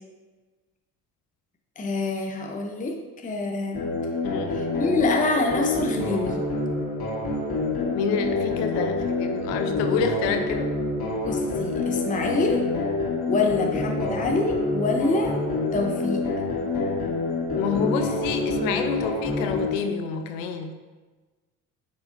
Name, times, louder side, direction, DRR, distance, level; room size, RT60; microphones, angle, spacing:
voice 1, 1.8-3.9 4.5-6.4 11.2-12.6 13.3-15.4 15.7-16.2 18.7-18.9, left 3 dB, 15° left, 2 dB, 0.8 m, -26 dB
sound 1, 3.7-19.7, left 2 dB, 55° left, 2.1 m, -27 dB
voice 2, 4.2-4.6 7.9-10.7 17.6-20.7, left 6 dB, 80° left, 6 dB, 0.8 m, -28 dB
9.1 x 4.9 x 2.7 m, 1.3 s
hypercardioid pair, 65°, 45 cm